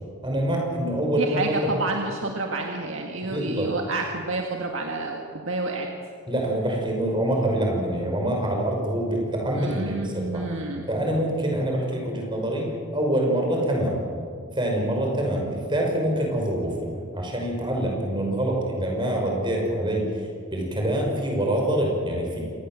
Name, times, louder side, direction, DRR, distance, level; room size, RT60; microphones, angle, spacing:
voice 1, 0.2-1.7 3.2-3.7 6.3-10.5 10.9-14.0 14.5-22.4, right 1 dB, 20° right, 0 dB, 5.8 m, -25 dB
voice 2, 1.2-5.9 9.6-10.9, right 2 dB, 60° right, 1 dB, 2.0 m, -29 dB
27.5 x 19.5 x 7.6 m, 2.3 s
head